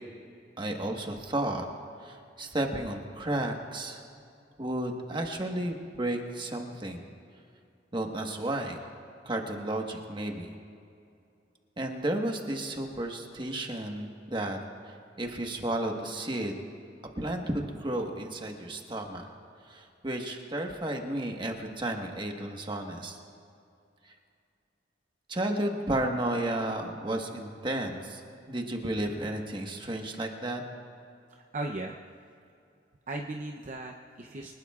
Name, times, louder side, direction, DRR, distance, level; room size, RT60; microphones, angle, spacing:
voice 1, 0.6-1.6 2.0-4.0 4.6-7.0 7.9-8.8 9.2-10.5 11.8-14.6 14.8-16.7 17.2-19.3 19.6-23.2 24.0-24.1 25.3-28.2 28.5-30.6, right 1 dB, 25° right, 2 dB, 1.3 m, -33 dB
voice 2, 31.5-32.0 33.1-34.5, right 2 dB, 40° right, 2 dB, 0.7 m, -36 dB
24.5 x 19.5 x 2.4 m, 2.5 s
head